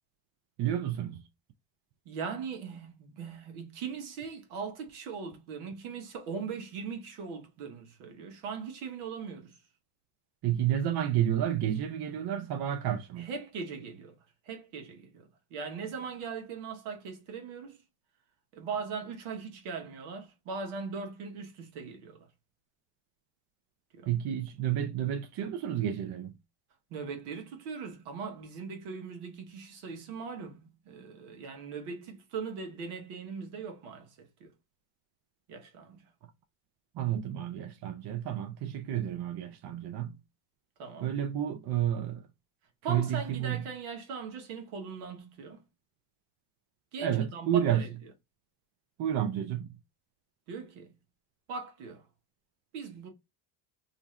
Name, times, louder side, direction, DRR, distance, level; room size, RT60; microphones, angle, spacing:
voice 1, 0.6-1.2 10.4-13.3 24.1-26.3 36.9-40.2 41.0-42.3 42.9-43.6 47.0-47.8 49.0-49.7, right 10 dB, 50° right, 0.6 m, -30 dB
voice 2, 2.0-9.6 10.7-10.8 13.2-14.1 14.4-17.8 18.5-22.3 23.9-24.2 26.9-34.5 35.5-36.0 40.8-41.1 42.8-45.6 46.9-47.9 50.5-50.9 51.5-52.0 52.7-53.1, right 5 dB, 75° right, 1.1 m, -40 dB
2.6 x 2.5 x 3.0 m
supercardioid pair, 70°, 49 cm